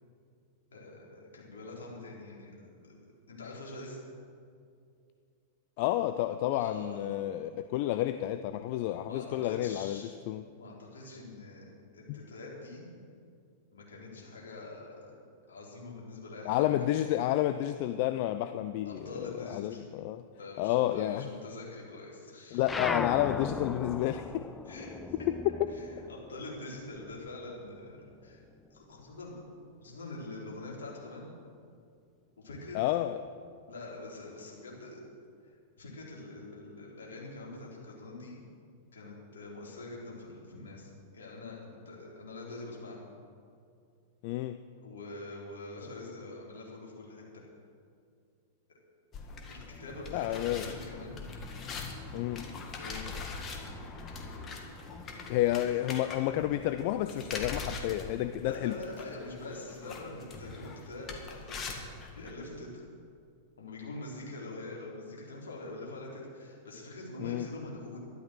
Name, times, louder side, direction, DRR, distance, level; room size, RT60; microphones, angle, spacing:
voice 1, 0.7-3.0 3.3-4.0 6.5-7.3 9.0-10.2 10.5-11.7 11.9-12.9 13.7-15.2 15.5-16.9 18.9-19.9 20.4-22.8 24.7-25.3 25.7-28.4 28.7-29.3 29.8-31.2 32.4-32.8 33.7-35.0 35.8-38.4 38.9-43.0 44.8-47.4 49.5-51.2 52.8-53.1 58.4-61.7 62.1-62.8 63.6-68.0, left 2 dB, 75° left, -3 dB, 3.9 m, -44 dB
voice 2, 5.8-10.4 12.1-12.2 16.4-20.2 20.6-21.3 22.5-24.5 32.7-33.2 44.2-44.6 50.1-50.7 52.1-52.5 55.3-58.8 67.2-67.5, left 13 dB, 55° left, 10 dB, 0.5 m, -30 dB
sound 1, 22.6-27.5 27.8-29.3, left 3 dB, 15° left, 0.7 m, -38 dB
sound 2, 49.1-62.3, left 4 dB, 30° left, 2.1 m, -42 dB
12.5 x 11.5 x 6.5 m, 2.4 s
hypercardioid pair, 95°, 0 cm